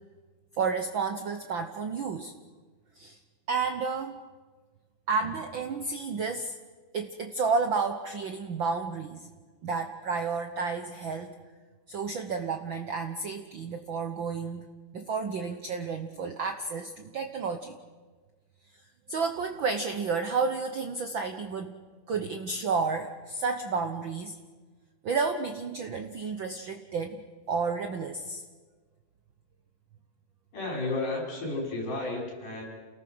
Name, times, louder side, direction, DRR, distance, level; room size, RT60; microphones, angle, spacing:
voice 1, 0.6-2.3 3.0-3.2 3.5-4.2 5.1-6.5 6.9-9.3 9.6-11.3 11.9-14.7 14.9-17.8 19.1-21.8 22.1-24.3 25.0-28.4, right 4 dB, 80° right, 6 dB, 1.0 m, -31 dB
voice 2, 30.5-32.6, left 2 dB, 80° left, -1 dB, 7.3 m, -32 dB
29.0 x 18.5 x 6.1 m, 1.4 s
omnidirectional pair, 3.6 m